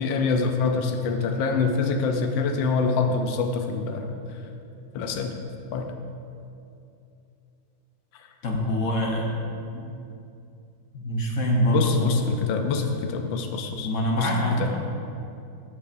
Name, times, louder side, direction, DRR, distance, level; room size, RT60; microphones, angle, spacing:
voice 1, 0.0-4.1 4.9-5.3 5.7-5.9 11.7-13.9 14.2-14.3 14.6-14.7, left 4 dB, 75° left, 4 dB, 1.3 m, -25 dB
voice 2, 8.4-9.4 9.7-9.9 10.9-12.1 13.8-14.6, equal, 50° left, -1 dB, 1.1 m, -24 dB
14.0 x 5.5 x 2.6 m, 2.6 s
omnidirectional pair, 2.2 m